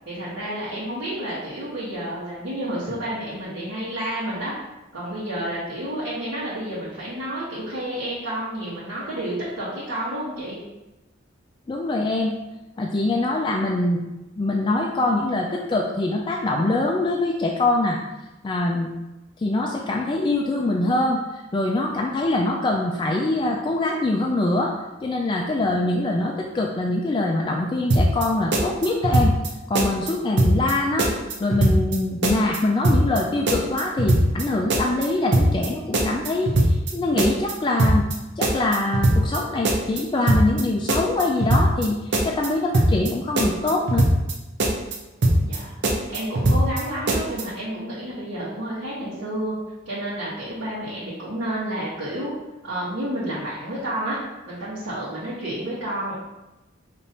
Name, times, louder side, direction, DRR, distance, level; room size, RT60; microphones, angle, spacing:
voice 1, 0.0-4.5 4.9-10.6 45.4-49.6 49.8-52.3 52.6-54.2 54.5-56.1, right 1 dB, 80° right, -11 dB, 1.4 m, -30 dB
voice 2, 11.7-12.4 12.8-14.0 14.4-18.0 18.4-18.9 19.4-24.7 25.0-29.4 29.7-31.1 31.4-44.1, left 2 dB, 25° left, 0 dB, 0.3 m, -24 dB
sound 1, 27.9-28.3 28.5-29.5 29.7-30.1 30.4-30.7 31.0-32.0 32.2-32.6 32.8-33.2 33.5-34.4 34.7-35.1 35.3-35.7 35.9-36.9 37.2-37.5 37.8-38.1 38.4-39.4 39.6-40.0 40.3-40.6 40.9-41.9 42.1-42.5 42.7-43.1 43.4-44.3 44.6-45.0 45.2-45.6 45.8-46.8 47.1-47.4, right 1 dB, 60° right, 0.7 m, -20 dB
5.1 x 3.0 x 2.8 m, 1.0 s
head